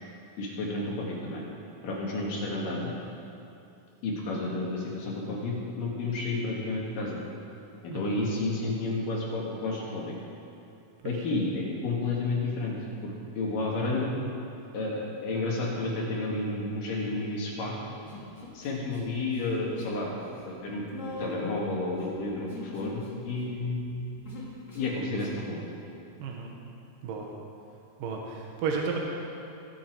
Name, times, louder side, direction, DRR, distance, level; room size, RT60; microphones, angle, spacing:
voice 1, 0.4-1.4 1.8-2.9 4.0-7.2 7.8-10.1 11.0-12.8 13.0-14.1 14.7-17.7 18.5-20.1 20.4-24.1 24.7-25.6, left 2 dB, 65° left, -3 dB, 3.2 m, -31 dB
Human voice, 18.0-19.0 19.3-20.0 20.3-25.5, left 3 dB, 25° left, 2.4 m, -43 dB
voice 2, 26.2-26.6 27.0-27.3 28.0-29.0, right 5 dB, 70° right, -1 dB, 2.6 m, -33 dB
21.5 x 7.3 x 4.6 m, 2.8 s
omnidirectional pair, 4.5 m